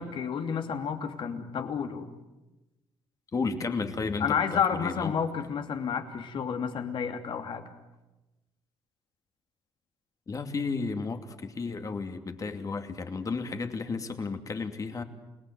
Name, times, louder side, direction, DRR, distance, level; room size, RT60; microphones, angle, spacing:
voice 1, 0.0-2.1 4.2-7.6, left 7 dB, 60° left, 6 dB, 2.9 m, -30 dB
voice 2, 3.3-5.1 10.3-15.0, left 4 dB, 35° left, 7 dB, 2.7 m, -33 dB
29.0 x 19.0 x 9.5 m, 1.0 s
cardioid pair, 95°, 10 cm